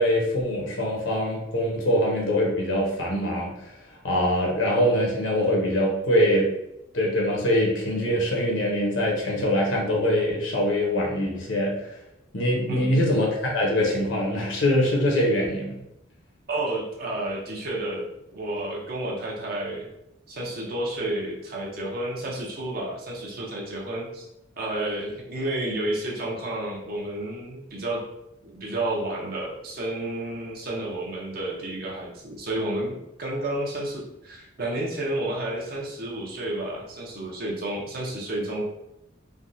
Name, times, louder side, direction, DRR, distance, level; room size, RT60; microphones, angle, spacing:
voice 1, 0.0-3.7 4.0-6.5 6.9-12.0 12.3-15.7, equal, 70° left, -2 dB, 0.9 m, -23 dB
voice 2, 12.7-13.0 16.5-19.9 20.3-24.2 24.6-28.0 28.4-38.6, right 1 dB, 50° right, -2 dB, 0.7 m, -31 dB
3.4 x 2.2 x 2.6 m, 0.85 s
head